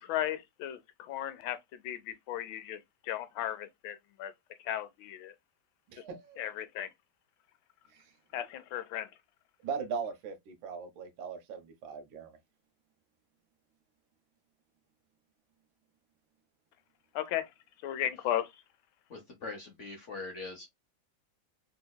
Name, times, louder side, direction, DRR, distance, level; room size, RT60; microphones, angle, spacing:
voice 1, 0.0-4.3 4.6-5.3 6.4-6.9 8.3-9.1 17.1-17.5 17.8-18.5, left 12 dB, 85° left, 1.4 m, -35 dB
voice 2, 5.9-6.4 7.9-8.1 9.6-12.4, right 6 dB, 85° right, 1.6 m, -39 dB
voice 3, 19.1-20.7, left 3 dB, 55° left, 0.9 m, -42 dB
3.3 x 3.0 x 2.2 m
omnidirectional pair, 2.1 m